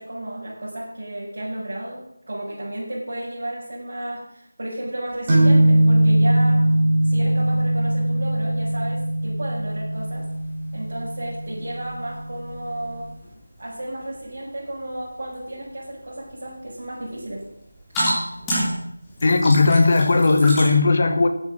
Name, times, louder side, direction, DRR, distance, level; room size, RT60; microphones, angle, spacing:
voice 1, 0.0-6.6 7.0-10.3 10.7-13.1 13.6-17.4, right 1 dB, 50° right, -9 dB, 6.0 m, -33 dB
sound 1, 5.3-12.8, right 1 dB, 25° right, 4.5 m, -20 dB
sound 2, 9.9-20.7, equal, 10° left, 3.6 m, -33 dB
voice 2, 19.2-21.3, left 3 dB, 40° left, 7 dB, 1.4 m, -17 dB
12.0 x 9.6 x 6.3 m, 0.79 s
figure-of-eight pair, 165°, 0 cm